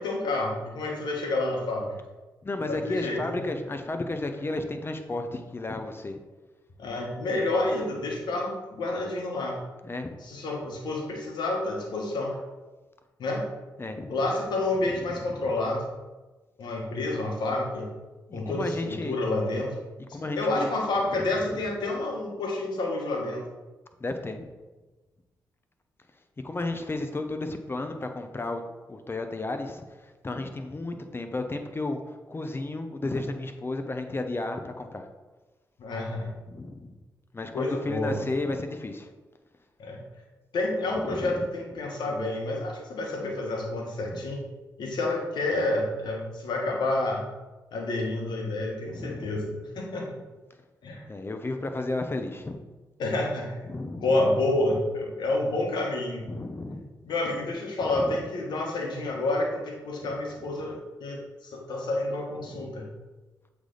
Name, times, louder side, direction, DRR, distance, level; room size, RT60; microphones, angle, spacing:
voice 1, 0.0-1.9 2.6-3.5 6.8-9.6 10.2-12.4 13.2-13.5 14.1-15.9 16.6-17.9 18.3-19.7 20.1-23.5 35.8-36.3 37.5-38.2 39.8-40.0 40.5-44.4 44.8-47.2 47.7-50.2 50.8-51.1 53.0-53.6 53.9-56.3 57.0-62.9, left 2 dB, 75° left, 0 dB, 1.4 m, -29 dB
voice 2, 2.4-6.2 9.8-10.2 13.8-14.1 14.9-15.4 18.3-19.2 20.1-20.7 21.2-21.3 24.0-24.5 26.4-28.6 28.9-32.0 32.3-35.0 36.5-36.9 37.3-39.1 41.1-41.4 44.1-44.2 48.9-49.3 51.1-52.6 53.6-54.3 56.3-56.9 57.9-58.2 60.1-60.2 60.4-60.5 62.5-62.7, left 2 dB, 30° left, 6 dB, 0.8 m, -33 dB
7.9 x 3.4 x 3.9 m, 1.2 s
supercardioid pair, 50°, 8 cm